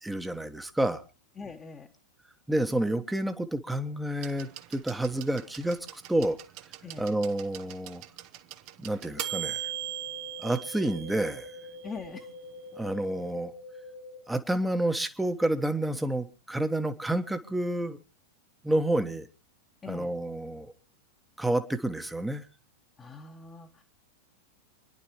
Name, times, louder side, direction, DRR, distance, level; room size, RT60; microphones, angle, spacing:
voice 1, 0.0-1.0 2.5-6.4 7.0-8.0 8.8-9.7 10.4-11.5 12.7-13.5 14.3-18.0 18.6-19.3 19.9-20.7 21.4-22.5, right 1 dB, 5° right, 9 dB, 1.2 m, -29 dB
voice 2, 1.4-1.9 6.8-7.0 11.8-12.3 19.8-20.1 23.0-23.8, left 4 dB, 20° left, 1 dB, 1.3 m, -42 dB
sound 1, 4.2-12.0 13.1-13.2, right 14 dB, 45° right, 0.9 m, -40 dB
sound 2, 9.2-14.2, left 2 dB, 85° left, 5.6 m, -45 dB
28.0 x 11.0 x 3.2 m, 0.31 s
figure-of-eight pair, 90°, 0 cm